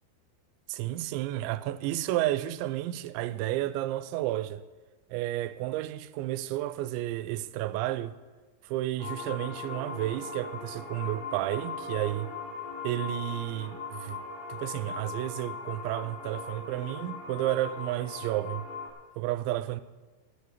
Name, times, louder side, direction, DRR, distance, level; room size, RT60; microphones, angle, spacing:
voice 1, 0.7-4.6 5.1-8.1 8.6-12.3 12.8-14.2 14.5-18.7 19.2-19.8, right 15 dB, 90° right, 2.9 m, -31 dB
sound 1, 9.0-18.9, left 4 dB, 40° left, 4.0 m, -39 dB
13.5 x 6.7 x 8.4 m
omnidirectional pair, 5.2 m